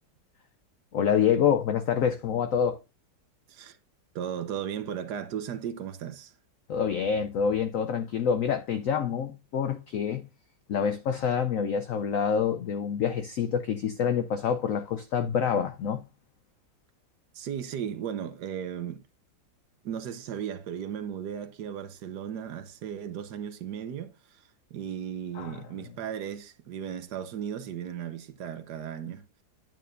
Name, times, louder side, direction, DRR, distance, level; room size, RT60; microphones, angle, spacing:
voice 1, 0.9-2.8 6.7-10.3 10.7-16.0 25.3-25.6, left 7 dB, 75° left, 0.7 m, -27 dB
voice 2, 4.1-6.3 17.3-19.0 19.8-24.4 24.7-29.2, right 8 dB, 65° right, 1.3 m, -36 dB
9.1 x 8.9 x 2.5 m
omnidirectional pair, 2.0 m